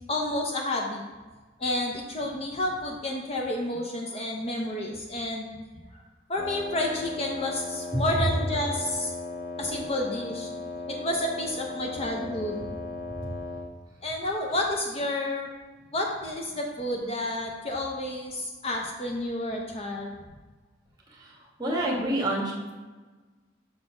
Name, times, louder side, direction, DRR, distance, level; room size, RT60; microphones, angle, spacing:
voice 1, 0.1-1.0 1.6-5.5 5.9-6.0 6.3-9.1 9.6-10.5 10.9-12.6 14.0-15.5 15.9-20.2, left 1 dB, 30° left, 0 dB, 0.6 m, -30 dB
Wind instrument woodwind instrument, 6.4-13.8, left 3 dB, 75° left, 0.5 m, -37 dB
voice 2, 21.1-22.7, right 1 dB, 20° right, -2 dB, 1.2 m, -28 dB
6.2 x 4.1 x 4.9 m, 1.3 s
head